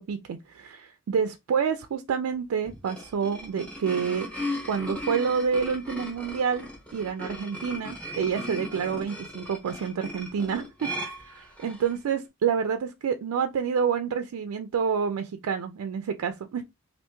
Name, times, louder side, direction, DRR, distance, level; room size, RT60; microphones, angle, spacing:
voice 1, 0.0-16.6, right 6 dB, 85° right, 0.4 m, -28 dB
sound 1, 2.6-12.0, left 1 dB, 5° left, 1.0 m, -37 dB
3.3 x 2.5 x 2.9 m
head